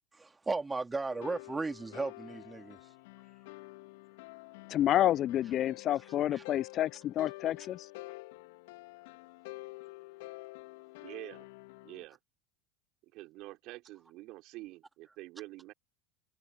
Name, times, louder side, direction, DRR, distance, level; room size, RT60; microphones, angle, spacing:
voice 1, 0.2-2.8 6.0-6.1 6.3-6.4, right 3 dB, 15° right, 2.9 m, -35 dB
sound 1, 1.1-12.0, left 22 dB, 65° left, 2.9 m, -49 dB
voice 2, 4.7-7.8, left 12 dB, 45° left, 0.5 m, -29 dB
voice 3, 11.0-11.5 11.8-12.2 13.1-15.7, right 19 dB, 55° right, 5.2 m, -47 dB
hypercardioid pair, 85°, 0 cm